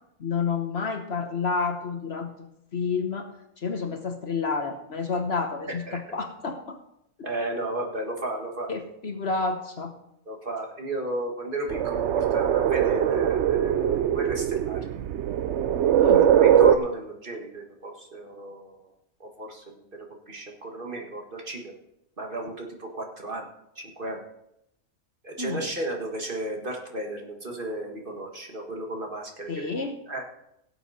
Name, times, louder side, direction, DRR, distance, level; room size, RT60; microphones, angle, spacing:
voice 1, 0.2-2.3 2.7-6.8 8.7-9.9 16.0-16.3 25.4-25.7 29.5-30.0, left 4 dB, 50° left, 6 dB, 1.2 m, -29 dB
voice 2, 5.7-6.0 7.2-8.7 10.3-14.8 16.1-18.8 19.2-19.6 19.9-21.8 22.2-23.5 23.8-24.2 25.2-29.7 30.1-30.2, right 1 dB, 40° right, 2 dB, 2.0 m, -34 dB
sound 1, 11.7-16.8, right 9 dB, 65° right, 0.8 m, -21 dB
17.5 x 7.8 x 4.2 m, 0.81 s
omnidirectional pair, 1.5 m